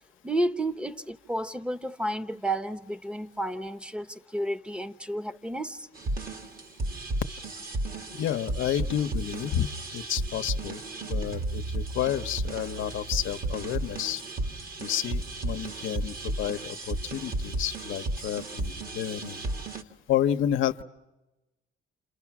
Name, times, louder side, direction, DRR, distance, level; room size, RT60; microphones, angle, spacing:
voice 1, 0.2-5.9, right 1 dB, 5° right, 1.0 m, -31 dB
sound 1, 5.9-19.8, right 2 dB, 45° right, 1.9 m, -33 dB
voice 2, 8.1-14.2 14.8-19.4 20.1-20.8, left 10 dB, 80° left, 0.8 m, -30 dB
28.5 x 28.5 x 6.0 m
cardioid pair, 90°, 20 cm